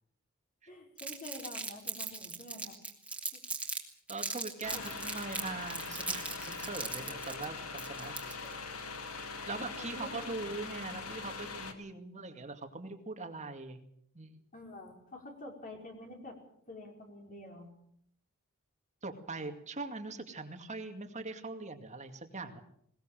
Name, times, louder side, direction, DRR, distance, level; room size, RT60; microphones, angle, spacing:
voice 1, 0.7-2.8 3.3-3.4 4.7-4.8 7.1-7.2 8.4-8.7 9.8-10.5 14.5-16.4 16.7-17.7, left 1 dB, 40° left, 2 dB, 5.3 m, -48 dB
Crumpling crinkling, 1.0-3.8 4.1-8.5, right 3 dB, 5° right, 3.0 m, -39 dB
voice 2, 4.1-8.4 9.5-13.8 14.1-14.4 19.0-22.6, right 3 dB, 35° right, 6 dB, 2.3 m, -42 dB
sound 1, 4.6-11.7, left 4 dB, 75° left, 2.7 m, -42 dB
21.0 x 20.0 x 7.6 m, 0.67 s
head